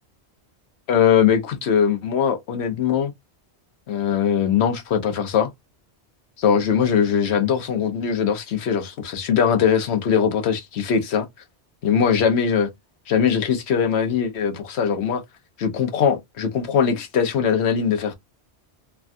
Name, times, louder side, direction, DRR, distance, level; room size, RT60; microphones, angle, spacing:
voice 1, 0.9-3.1 3.9-5.5 6.4-11.3 11.8-12.7 13.1-15.2 15.6-18.1, left 7 dB, 75° left, 1.0 m, -21 dB
3.2 x 2.2 x 2.5 m
omnidirectional pair, 1.1 m